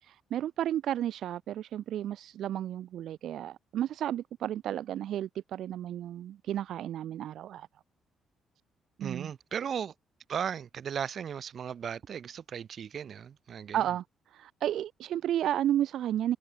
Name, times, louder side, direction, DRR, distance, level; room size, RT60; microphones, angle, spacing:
voice 1, 0.0-7.7 9.0-9.3 13.7-16.4, right 11 dB, 75° right, 0.8 m, -32 dB
voice 2, 9.0-9.9 10.3-13.8, right 8 dB, 55° right, 2.2 m, -36 dB
cardioid pair, 90°, 0 cm